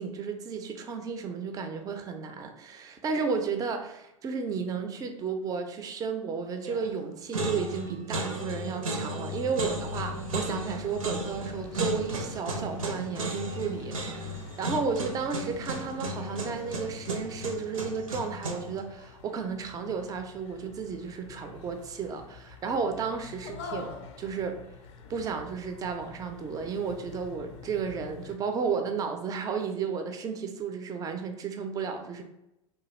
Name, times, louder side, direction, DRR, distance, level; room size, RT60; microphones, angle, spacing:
voice 1, 0.0-24.7 25.1-32.2, right 5 dB, 20° right, 6 dB, 0.4 m, -33 dB
sound 1, 6.6-7.0 7.3-18.8, right 1 dB, 75° right, 0.6 m, -35 dB
sound 2, 9.6-28.4, left 5 dB, 55° left, 0.4 m, -48 dB
3.3 x 2.2 x 3.0 m, 0.90 s
figure-of-eight pair, 85°, 18 cm